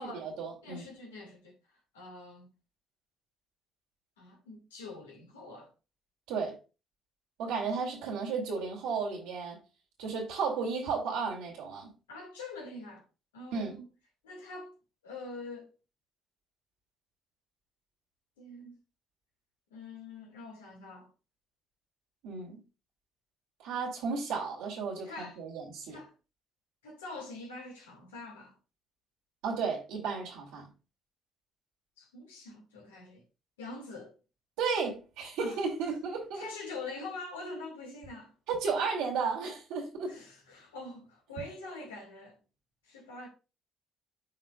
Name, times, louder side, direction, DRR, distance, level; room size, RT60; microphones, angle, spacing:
voice 1, 0.0-0.8 6.3-6.6 7.4-9.6 10.0-11.9 13.5-13.8 22.2-22.6 23.6-26.0 29.4-30.7 34.6-36.5 38.5-40.2, right 5 dB, 75° right, 2.7 m, -33 dB
voice 2, 0.6-1.5 1.9-2.5 4.2-5.7 12.1-13.1 13.3-13.9 14.2-14.7 15.0-15.7 18.4-18.8 19.7-21.1 25.0-25.4 25.9-26.1 26.8-28.6 32.0-33.2 33.6-34.2 35.4-35.6 36.3-38.3 40.1-42.4 42.8-43.3, left 2 dB, 90° left, 2.2 m, -44 dB
12.0 x 4.3 x 2.5 m
hypercardioid pair, 50°, 0 cm